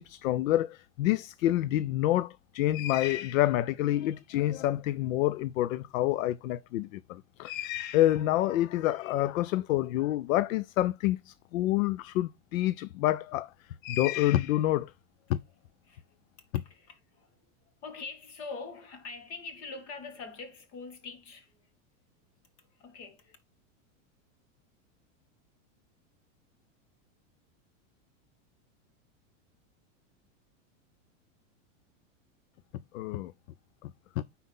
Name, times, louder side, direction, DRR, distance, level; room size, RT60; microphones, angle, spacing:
voice 1, 0.0-14.9 15.3-15.4 32.9-33.3 33.8-33.9, left 14 dB, 75° left, 0.5 m, -28 dB
voice 2, 16.5-21.7 22.6-23.4, left 4 dB, 50° left, 2.2 m, -44 dB
9.4 x 4.2 x 3.6 m
supercardioid pair, 170°, 41 cm